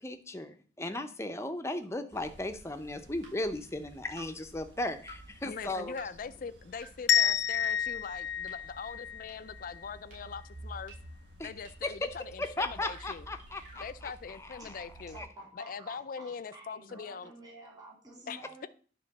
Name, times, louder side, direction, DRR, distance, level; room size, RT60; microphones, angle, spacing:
voice 1, 0.0-6.0 11.4-11.5 11.8-12.1 12.4-14.9 15.2-15.3, left 2 dB, 15° left, 8 dB, 0.7 m, -36 dB
sound 1, 2.1-15.2, right 1 dB, 80° right, 1.2 m, -52 dB
sound 2, 2.2-2.3 3.2-3.3 4.2-4.3 5.1-5.2 6.0-6.1 6.8-6.9 7.6-7.7 8.5-8.6 9.3-9.4 10.1-10.2 10.9-11.0 11.6-11.7 12.4-12.5 12.7-13.9, right 1 dB, 45° right, 3.3 m, -50 dB
voice 2, 5.5-10.9 11.4-13.2 13.8-15.2 15.6-17.3 18.3-18.7, left 6 dB, 50° left, 13 dB, 0.4 m, -42 dB
sound 3, 7.1-9.9, left 10 dB, 85° left, 0.7 m, -29 dB
voice 3, 15.1-18.7, right 2 dB, 20° right, -4 dB, 2.6 m, -51 dB
9.8 x 3.7 x 6.5 m, 0.42 s
head